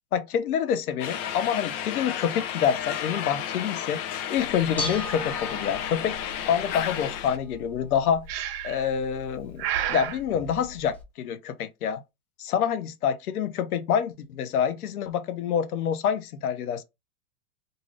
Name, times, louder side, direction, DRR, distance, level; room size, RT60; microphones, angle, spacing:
voice 1, 0.1-4.0 4.3-6.1 6.5-8.3 8.6-12.0 12.4-16.8, left 8 dB, 75° left, 0.8 m, -27 dB
sound 1, 1.0-7.4, left 9 dB, 40° left, 0.7 m, -32 dB
Bell / Dishes pots and pans, 4.4-11.0, left 1 dB, 5° left, 0.6 m, -40 dB
Breathing, 8.3-8.9 9.6-10.2, right 11 dB, 45° right, 0.5 m, -30 dB
2.6 x 2.6 x 3.1 m
hypercardioid pair, 125°, 44 cm